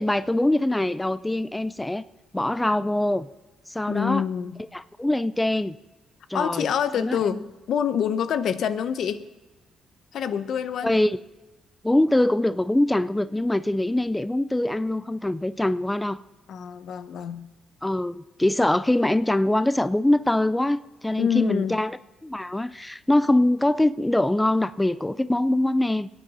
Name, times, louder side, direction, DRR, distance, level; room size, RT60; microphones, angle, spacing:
voice 1, 0.0-2.0 2.3-3.3 3.7-4.2 4.7-5.8 6.3-6.7 7.0-7.2 10.8-11.2 11.8-16.2 17.8-21.9 22.2-26.1, left 1 dB, 10° left, 15 dB, 0.4 m, -23 dB
voice 2, 3.9-4.6 6.3-7.4 7.7-9.2 10.1-10.9 16.5-17.5 21.2-21.8, left 8 dB, 70° left, 12 dB, 0.7 m, -26 dB
21.0 x 9.0 x 4.1 m, 1.2 s
cardioid pair, 90°, 0 cm